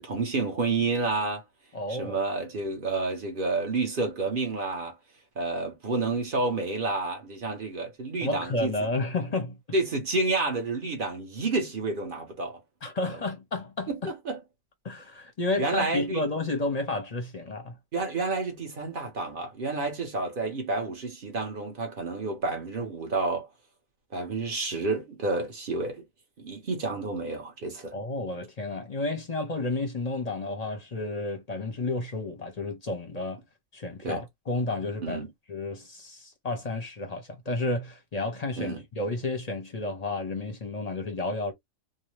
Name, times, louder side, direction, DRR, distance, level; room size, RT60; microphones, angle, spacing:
voice 1, 0.0-1.4 1.9-4.9 5.4-8.7 9.7-12.6 13.0-13.2 13.9-14.4 15.6-16.2 17.9-23.5 24.1-26.0 26.4-27.9 34.0-34.2 35.0-35.3 38.6-38.8, right 3 dB, 45° right, 0.9 m, -30 dB
voice 2, 1.7-2.2 8.2-9.6 12.8-14.1 14.8-17.8 27.9-33.4 33.7-35.2 35.5-41.5, left 2 dB, 40° left, 0.6 m, -31 dB
2.7 x 2.1 x 3.1 m
omnidirectional pair, 1.4 m